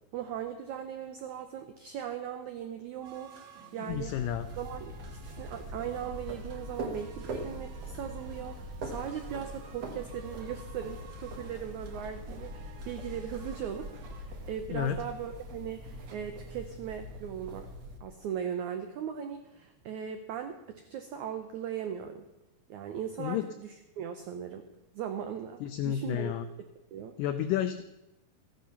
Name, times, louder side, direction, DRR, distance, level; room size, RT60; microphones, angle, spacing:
voice 1, 0.1-4.2 4.6-17.7 18.0-22.3 22.7-24.7 24.9-26.3 26.9-27.1, right 9 dB, 90° right, 7 dB, 1.6 m, -39 dB
sound 1, 3.0-14.2, right 5 dB, 75° right, 1.1 m, -53 dB
voice 2, 3.9-4.5 14.7-15.0 23.2-23.4 25.6-26.4 27.2-27.8, left 10 dB, 90° left, 10 dB, 1.9 m, -31 dB
sound 2, 3.9-18.0, equal, 55° right, 2.1 m, -42 dB
14.5 x 10.5 x 5.8 m, 0.91 s
omnidirectional pair, 4.5 m